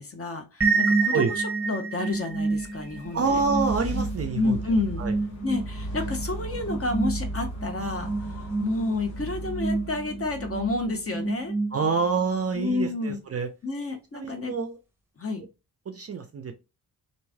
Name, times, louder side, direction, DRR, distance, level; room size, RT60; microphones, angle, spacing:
voice 1, 0.0-3.4 4.3-5.0 5.4-11.5 12.5-13.2 13.6-14.5 15.2-15.5, left 2 dB, 30° left, 4 dB, 0.9 m, -30 dB
sound 1, 0.6-12.2, right 4 dB, 5° right, 1.0 m, -29 dB
sound 2, 2.3-11.4, right 1 dB, 65° left, 1.5 m, -37 dB
voice 2, 3.1-4.6 5.0-5.1 11.7-13.5 14.1-14.8 15.9-16.5, right 5 dB, 35° right, 6 dB, 0.5 m, -27 dB
3.0 x 2.6 x 2.3 m, 0.28 s
hypercardioid pair, 45°, 46 cm